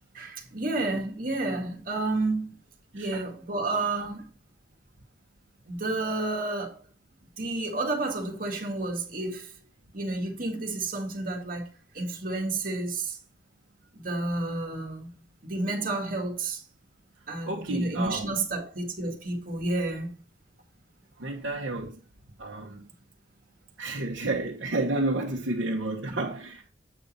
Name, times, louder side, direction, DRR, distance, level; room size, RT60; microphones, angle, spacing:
voice 1, 0.1-2.6 2.9-4.3 5.7-6.8 7.4-9.5 9.9-11.7 11.9-13.2 13.9-15.1 15.4-16.6 17.3-20.2 26.1-26.2, right 2 dB, 50° right, 2.0 m, -30 dB
voice 2, 17.5-18.4 21.2-22.0 22.4-22.9 23.8-26.7, right 2 dB, 80° right, 1.3 m, -31 dB
8.5 x 5.3 x 4.2 m
head